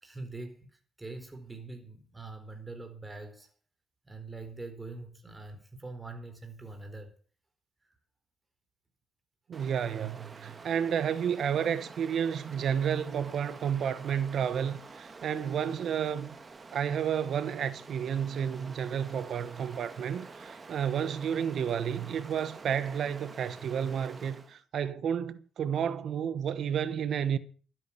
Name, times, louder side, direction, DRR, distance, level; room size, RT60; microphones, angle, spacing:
voice 1, 0.0-3.5 4.0-7.1 7.8-7.9, right 3 dB, 15° right, 4.2 m, -43 dB
Stream, 9.5-24.6, right 4 dB, 30° right, 2.1 m, -48 dB
voice 2, 9.5-16.4 16.7-27.4, right 8 dB, 65° right, 1.2 m, -31 dB
12.5 x 10.0 x 8.5 m
cardioid pair, 90°, 0 cm